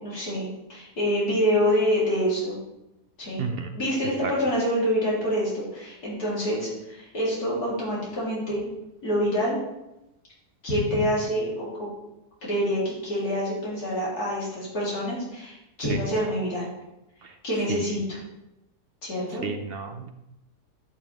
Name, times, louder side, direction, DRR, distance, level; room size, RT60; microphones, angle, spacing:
voice 1, 0.0-2.6 3.2-3.5 3.7-8.6 9.0-9.6 10.6-11.9 12.4-16.7 17.4-18.2 19.0-19.5, equal, 70° left, -7 dB, 4.0 m, -26 dB
voice 2, 3.4-3.7 4.2-4.3 15.9-16.0 17.2-17.4 17.7-18.0 19.4-20.1, right 5 dB, 65° right, 6 dB, 0.5 m, -32 dB
11.5 x 7.0 x 3.5 m, 0.92 s
omnidirectional pair, 1.7 m